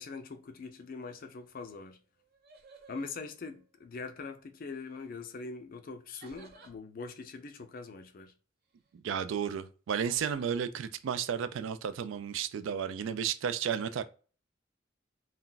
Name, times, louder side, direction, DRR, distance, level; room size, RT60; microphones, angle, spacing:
voice 1, 0.0-2.0 2.9-8.3, left 4 dB, 45° left, 0.4 m, -42 dB
sound 1, 2.2-4.0 4.6-5.1 6.2-6.8 10.0-10.6, right 3 dB, 50° right, 0.7 m, -57 dB
voice 2, 9.0-14.0, right 7 dB, 70° right, 0.3 m, -33 dB
2.3 x 2.1 x 3.8 m
head